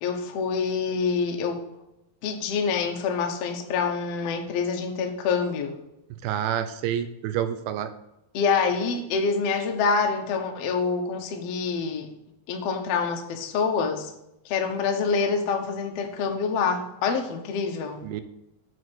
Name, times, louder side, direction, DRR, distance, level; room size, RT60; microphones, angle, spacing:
voice 1, 0.0-1.6 2.2-5.7 8.3-12.1 12.5-14.1 14.4-18.0, left 5 dB, 85° left, 3 dB, 1.3 m, -26 dB
voice 2, 6.2-7.9 18.0-18.2, right 10 dB, 80° right, 10 dB, 2.5 m, -28 dB
8.4 x 4.7 x 6.2 m, 0.86 s
omnidirectional pair, 4.6 m